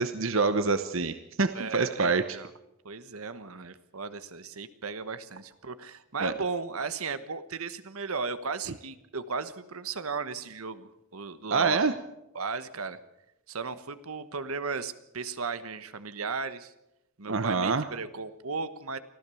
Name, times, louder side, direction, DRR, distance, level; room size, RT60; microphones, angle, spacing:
voice 1, 0.0-2.2 6.2-6.3 11.5-11.9 17.3-17.9, right 4 dB, 65° right, 10 dB, 0.9 m, -26 dB
voice 2, 1.5-2.5 2.8-11.9 12.3-13.0 13.5-16.7 17.2-19.0, right 4 dB, 85° right, 12 dB, 1.2 m, -36 dB
24.5 x 15.0 x 7.0 m, 0.89 s
head